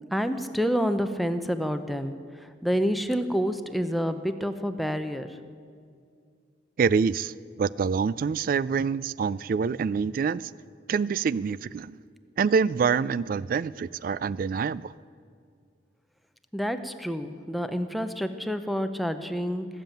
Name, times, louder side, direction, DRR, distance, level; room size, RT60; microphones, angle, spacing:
voice 1, 0.1-2.2 2.6-5.4 16.5-19.7, equal, ahead, 8 dB, 0.6 m, -28 dB
voice 2, 6.8-10.5 10.9-12.0 12.4-14.9, right 5 dB, 50° right, 19 dB, 0.3 m, -26 dB
18.5 x 7.4 x 9.1 m, 2.2 s
head